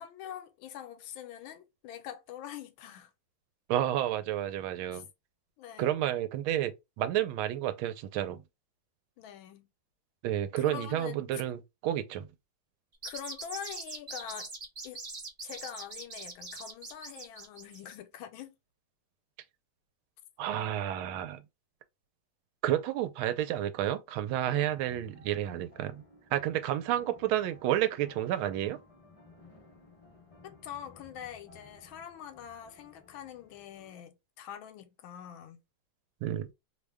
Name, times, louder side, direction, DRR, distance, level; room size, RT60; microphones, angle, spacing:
voice 1, 0.0-3.1 4.9-5.0 5.6-5.9 9.2-9.7 10.6-11.4 13.0-14.5 14.8-15.0 15.4-18.5 30.4-35.6, left 10 dB, 80° left, 1.4 m, -44 dB
voice 2, 3.7-5.1 5.8-8.4 10.2-12.3 20.4-21.4 22.6-26.0 26.3-28.8 36.2-36.5, right 12 dB, 90° right, 1.4 m, -30 dB
sound 1, 12.9-17.9, right 3 dB, 35° right, 0.9 m, -42 dB
sound 2, 24.4-33.9, left 2 dB, 55° left, 0.3 m, -57 dB
3.3 x 2.1 x 3.4 m
omnidirectional pair, 2.2 m